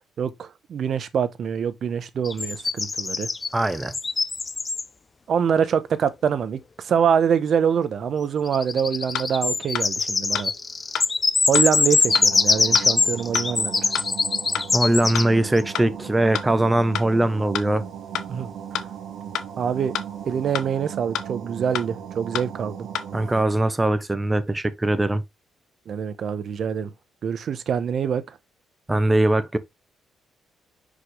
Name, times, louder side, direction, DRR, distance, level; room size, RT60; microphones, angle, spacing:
voice 1, 0.2-3.3 5.3-10.5 11.5-13.9 18.3-18.5 19.6-19.9 20.2-22.9 25.9-26.9 27.2-28.4, right 7 dB, 60° right, 0.9 m, -25 dB
sound 1, 2.2-4.8 8.5-15.6, left 4 dB, 30° left, 0.5 m, -23 dB
voice 2, 3.5-3.9 14.7-17.8 23.1-25.2 28.9-29.6, right 1 dB, 15° right, 0.9 m, -21 dB
sound 2, 9.1-9.2 9.7-9.9 10.3-10.4 10.9-11.1 11.5-11.6 12.1-12.3 12.7-12.8 13.3-13.5 13.9-14.0 14.5-14.7 15.1-15.2 15.7-15.9 16.3-16.5 16.9-17.1 17.5-17.6 18.1-18.3 18.7-18.8 19.3-19.5 19.9-20.0 20.5-20.7 21.1-21.2 21.7-21.9 22.3-22.4 22.9-23.1, left 9 dB, 80° left, 0.7 m, -27 dB
sound 3, 12.1-23.4, right 8 dB, 75° right, 1.4 m, -37 dB
5.8 x 5.0 x 3.2 m
cardioid pair, 90°, 0 cm